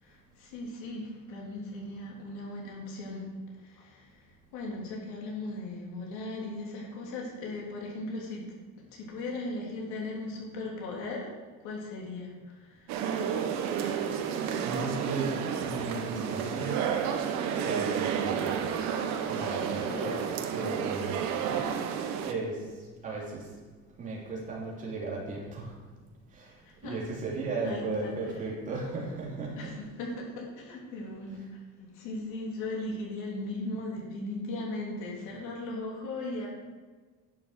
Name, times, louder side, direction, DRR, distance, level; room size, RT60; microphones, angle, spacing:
voice 1, 0.0-3.2 3.6-8.5 8.9-11.3 11.6-13.0 19.8-20.3 20.6-21.3 26.6-27.0 27.6-28.1 29.6-31.4 31.8-36.5, left 2 dB, 80° left, -2 dB, 3.6 m, -38 dB
voice 2, 4.0-4.5 14.6-20.2 20.5-25.8 26.2-29.8, right 3 dB, 25° right, -4 dB, 2.9 m, -37 dB
sound 1, 12.9-22.3, right 8 dB, 65° right, 1.2 m, -31 dB
11.0 x 7.4 x 6.4 m, 1.4 s
cardioid pair, 180°, 29 cm